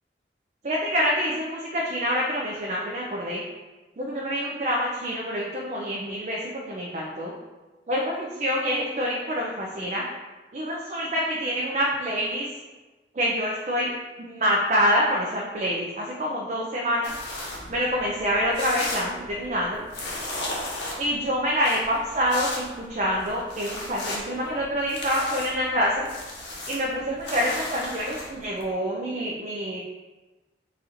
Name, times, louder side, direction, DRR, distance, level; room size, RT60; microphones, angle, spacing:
voice 1, 0.6-3.4 4.0-7.3 7.9-10.0 10.5-12.5 13.1-13.9 14.2-17.1 17.7-19.8 21.0-26.1 26.7-29.8, equal, 40° right, -3 dB, 0.5 m, -26 dB
sound 1, 17.0-28.6, left 1 dB, 75° left, 0.9 m, -36 dB
4.1 x 2.5 x 4.1 m, 1.2 s
head